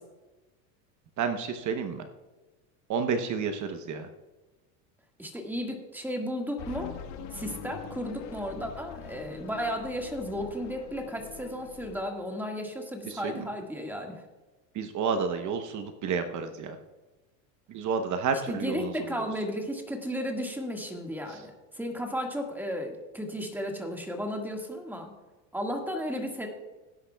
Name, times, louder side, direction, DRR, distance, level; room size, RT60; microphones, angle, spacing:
voice 1, 1.2-2.0 2.9-4.1 13.0-13.5 14.7-16.8 17.7-18.9 21.3-21.4, right 5 dB, 40° right, 7 dB, 0.9 m, -30 dB
voice 2, 5.2-6.9 7.3-14.2 18.5-25.1 25.5-26.5, equal, 5° right, 2 dB, 1.7 m, -34 dB
sound 1, 6.6-12.1, left 7 dB, 55° left, 1.5 m, -43 dB
17.5 x 10.0 x 2.3 m, 1.1 s
supercardioid pair, 125°, 47 cm